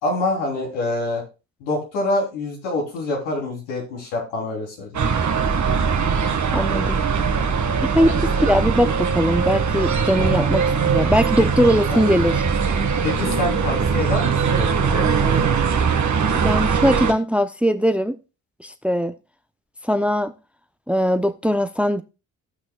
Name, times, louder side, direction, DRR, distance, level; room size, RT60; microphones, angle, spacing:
voice 1, 0.0-1.2 1.6-5.0 10.2-10.5 11.9-12.0 13.0-15.4, left 2 dB, 85° left, 3.6 m, -26 dB
sound 1, 4.9-17.1, right 6 dB, 45° right, 1.5 m, -21 dB
voice 2, 6.5-7.0 7.8-12.4 16.3-18.2 18.6-19.1 19.8-20.3 20.9-22.0, equal, 5° right, 0.7 m, -20 dB
17.0 x 6.0 x 2.3 m
hypercardioid pair, 50°, 40 cm